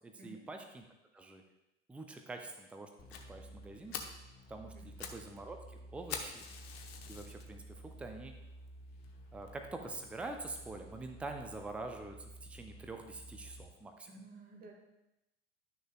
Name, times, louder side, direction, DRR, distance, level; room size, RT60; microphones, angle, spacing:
voice 1, 0.0-0.8 1.1-1.4 1.9-2.9 3.3-4.0 4.5-6.4 7.1-8.3 9.3-14.1, right 3 dB, 5° right, 5 dB, 0.5 m, -45 dB
sound 1, 3.0-13.6, right 1 dB, 25° left, 1.8 m, -53 dB
Fire, 3.1-3.2 3.6-3.7 3.9-4.2 4.7-5.2 5.5-5.6 6.1-7.4 8.0-8.1 8.7-8.8 9.0-9.1 9.5-9.6, left 6 dB, 55° left, 0.9 m, -44 dB
voice 2, 14.1-14.7, right 2 dB, 25° right, 1 dB, 1.6 m, -53 dB
11.0 x 6.3 x 2.4 m, 0.92 s
figure-of-eight pair, 80°, 36 cm